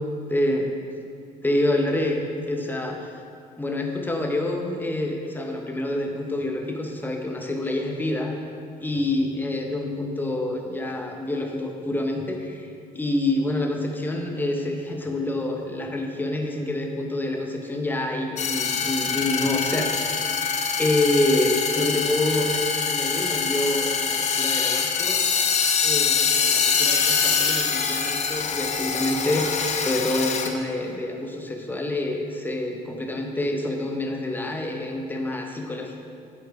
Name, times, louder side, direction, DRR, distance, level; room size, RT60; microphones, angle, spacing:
voice 1, 0.3-0.7 1.4-3.1 3.6-8.4 8.8-12.7 12.9-20.2 20.8-25.4 25.8-36.1, left 1 dB, 10° left, 2 dB, 0.9 m, -27 dB
sound 1, 18.4-30.5, left 6 dB, 45° left, 0.7 m, -24 dB
9.4 x 4.5 x 4.8 m, 2.4 s
cardioid pair, 110°, 17 cm